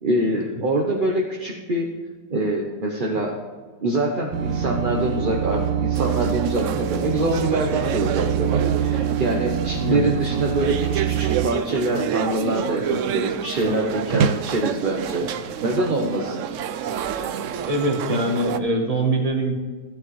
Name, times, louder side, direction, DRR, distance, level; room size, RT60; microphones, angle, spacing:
voice 1, 0.0-1.9 2.3-3.4 3.8-15.3 15.6-16.5, right 1 dB, 40° right, -1 dB, 0.8 m, -24 dB
sound 1, 4.3-11.5, right 9 dB, 65° right, 1.1 m, -25 dB
sound 2, 5.9-18.6, right 8 dB, 85° right, 0.6 m, -28 dB
voice 2, 9.8-10.1 17.6-19.5, right 1 dB, 20° right, 2 dB, 1.4 m, -23 dB
14.5 x 10.5 x 3.2 m, 1.4 s
omnidirectional pair, 1.9 m